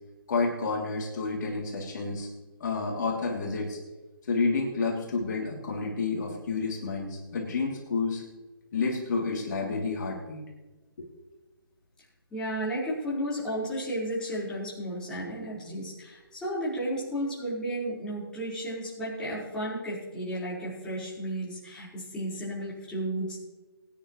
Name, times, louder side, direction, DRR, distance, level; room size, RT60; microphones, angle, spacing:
voice 1, 0.3-2.3 2.6-3.8 4.3-8.2 8.7-10.4, left 4 dB, 50° left, -2 dB, 3.1 m, -30 dB
voice 2, 12.3-23.4, right 1 dB, 5° left, -9 dB, 4.7 m, -33 dB
22.5 x 10.0 x 3.3 m, 1.2 s
hypercardioid pair, 155°, 13 cm